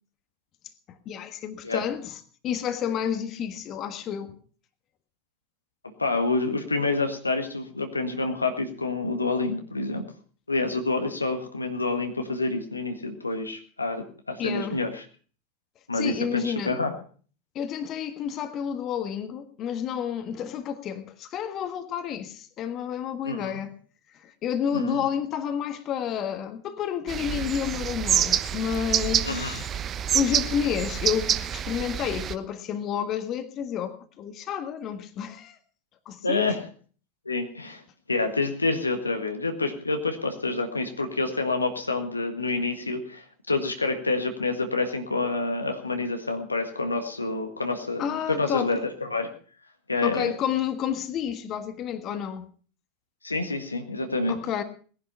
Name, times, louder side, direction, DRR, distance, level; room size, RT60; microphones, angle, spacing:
voice 1, 1.0-4.3 14.4-14.8 15.9-16.7 17.5-23.8 24.2-29.7 30.1-35.6 36.0-36.6 48.0-48.7 50.0-52.5 54.3-54.6, left 8 dB, 40° left, 1.6 m, -30 dB
voice 2, 6.0-10.1 10.5-15.0 15.9-16.9 23.3-23.6 24.7-25.0 29.3-29.6 36.2-36.6 37.3-37.8 38.1-49.3 49.9-50.3 53.2-54.4, left 3 dB, 85° left, 1.7 m, -28 dB
sound 1, 27.1-32.3, right 9 dB, 35° right, 0.9 m, -27 dB
18.0 x 11.0 x 5.6 m
figure-of-eight pair, 80°, 0 cm